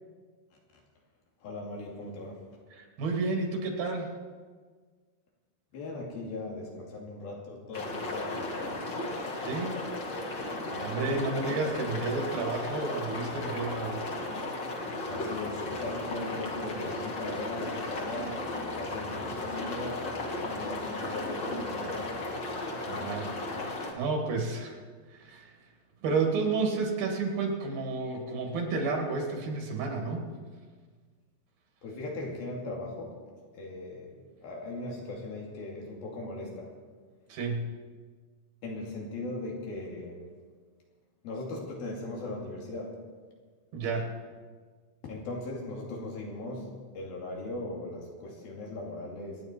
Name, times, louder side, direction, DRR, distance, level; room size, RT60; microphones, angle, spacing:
voice 1, 1.4-2.3 5.7-8.8 15.1-18.4 18.8-20.0 20.3-22.1 31.8-33.1 33.5-34.1 34.4-36.7 38.6-40.2 41.2-42.9 45.0-46.7 47.0-49.4, left 2 dB, 85° left, -1 dB, 4.4 m, -38 dB
voice 2, 2.7-4.1 9.4-9.8 10.3-14.1 22.5-24.8 25.1-25.6 26.0-30.3 37.3-37.7 43.7-44.1, right 3 dB, 80° right, 2 dB, 3.9 m, -31 dB
sound 1, 7.7-23.9, left 2 dB, 40° left, 1.9 m, -35 dB
26.0 x 9.8 x 4.5 m, 1.5 s
omnidirectional pair, 4.1 m